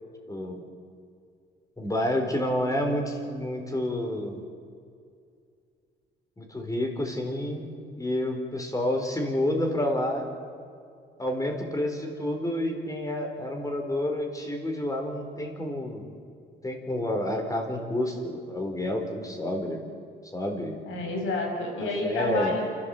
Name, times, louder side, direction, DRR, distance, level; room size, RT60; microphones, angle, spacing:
voice 1, 0.3-0.6 1.8-4.4 6.4-7.7 8.0-10.3 11.2-16.1 16.6-19.8 20.3-20.8 21.8-22.6, left 1 dB, 15° left, 3 dB, 4.3 m, -29 dB
voice 2, 20.9-22.6, left 2 dB, 85° left, 1 dB, 5.8 m, -29 dB
28.5 x 13.0 x 7.9 m, 2.3 s
cardioid pair, 90°, 20 cm